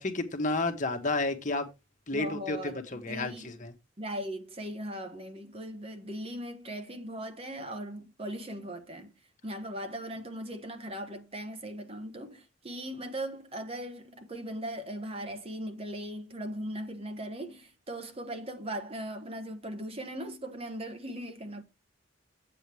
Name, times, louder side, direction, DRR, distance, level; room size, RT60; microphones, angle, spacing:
voice 1, 0.0-1.7 2.1-3.7, left 2 dB, 40° left, 1.4 m, -31 dB
voice 2, 2.1-3.5 4.0-9.1 9.4-21.6, right 1 dB, 30° right, 1.1 m, -39 dB
9.8 x 7.9 x 3.4 m
head